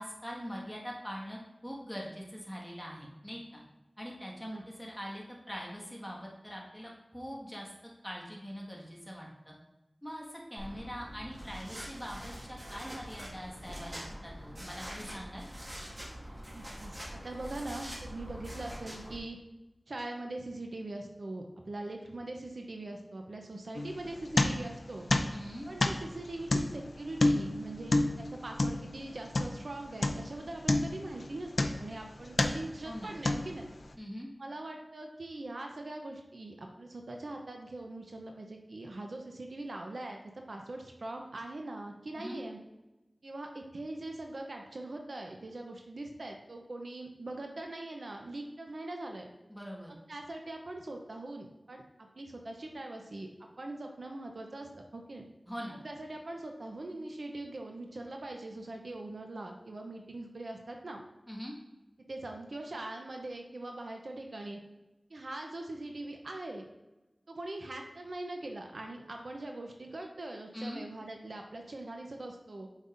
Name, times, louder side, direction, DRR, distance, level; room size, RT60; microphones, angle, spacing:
voice 1, 0.0-3.6 4.0-7.7 8.0-9.5 10.0-15.5 25.3-25.7 32.8-33.2 34.0-34.3 42.2-42.4 49.5-49.9 55.5-55.8 61.3-61.5 70.5-70.8, equal, 5° left, -3 dB, 1.6 m, -43 dB
sound 1, 10.6-19.2, equal, 35° right, 1.8 m, -44 dB
voice 2, 16.5-19.4 19.9-25.1 25.7-33.7 34.4-40.2 40.5-42.6 43.2-49.3 50.1-55.3 55.8-61.0 62.1-64.6 65.1-66.7 67.3-72.7, right 2 dB, 85° right, 2 dB, 0.7 m, -42 dB
sound 2, 23.7-24.8 25.1-29.7 30.0-30.4 30.7-32.0 32.3-32.8 33.2-33.8, left 2 dB, 80° left, 0.5 m, -29 dB
8.1 x 5.3 x 2.6 m, 1.0 s
wide cardioid pair, 65°, 0 cm